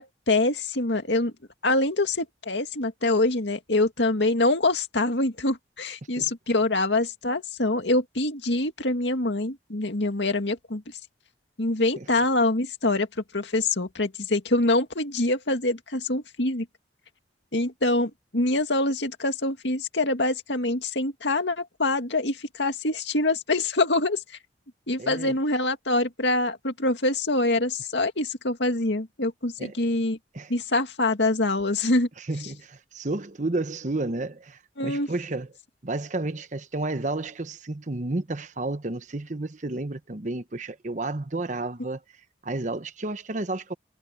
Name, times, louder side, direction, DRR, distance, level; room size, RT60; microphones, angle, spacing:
voice 1, 0.0-1.3 1.6-10.8 11.6-13.1 13.3-16.7 17.5-24.2 24.9-30.2 30.5-32.1 34.8-35.1, left 2 dB, 75° left, 2.2 m, -25 dB
voice 2, 25.0-25.4 29.6-29.7 30.3-30.5 32.2-35.5 35.8-42.0 42.4-43.7, right 2 dB, 40° right, 1.0 m, -31 dB
head